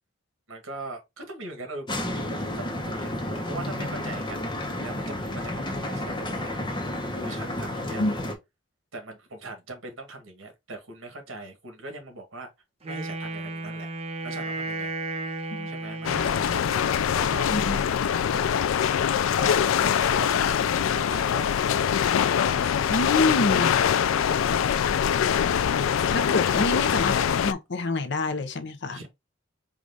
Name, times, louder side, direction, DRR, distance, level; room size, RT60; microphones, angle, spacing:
voice 1, 0.5-8.0 8.9-12.5 12.8-13.9 14.2-15.2 15.6-18.0 18.3-18.7 19.4-22.2 26.1-26.4 28.9-29.1, right 2 dB, 75° right, 1.7 m, -41 dB
sound 1, 1.9-8.4, left 1 dB, 25° left, 0.9 m, -31 dB
Wind instrument woodwind instrument, 12.8-16.8, right 2 dB, 30° right, 0.8 m, -34 dB
sound 2, 16.0-27.5, left 8 dB, 85° left, 0.4 m, -23 dB
voice 2, 17.4-17.8 22.9-23.7 26.1-29.0, left 2 dB, 60° left, 0.7 m, -27 dB
4.8 x 2.5 x 3.7 m
head